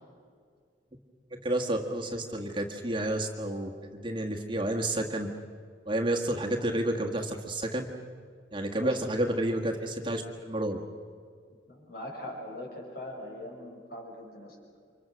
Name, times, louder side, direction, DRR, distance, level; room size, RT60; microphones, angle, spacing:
voice 1, 1.3-5.3 5.9-7.9 8.5-10.8, right 1 dB, 25° right, 1 dB, 1.6 m, -30 dB
voice 2, 11.7-14.6, left 1 dB, 55° left, 0 dB, 6.7 m, -41 dB
29.5 x 25.5 x 6.4 m, 2.1 s
head